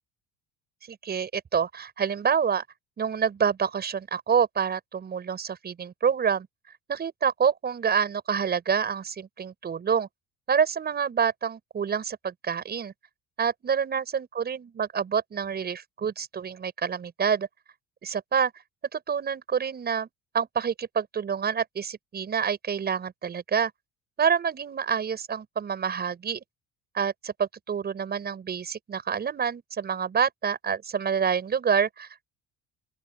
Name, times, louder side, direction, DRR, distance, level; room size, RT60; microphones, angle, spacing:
voice 1, 0.9-2.6 3.0-6.5 6.9-10.1 10.5-12.9 13.4-17.5 18.0-18.5 18.9-20.1 20.3-23.7 24.2-26.4 26.9-32.2, right 7 dB, 30° right, 6.9 m, -27 dB
open air
cardioid pair, 135°, 30 cm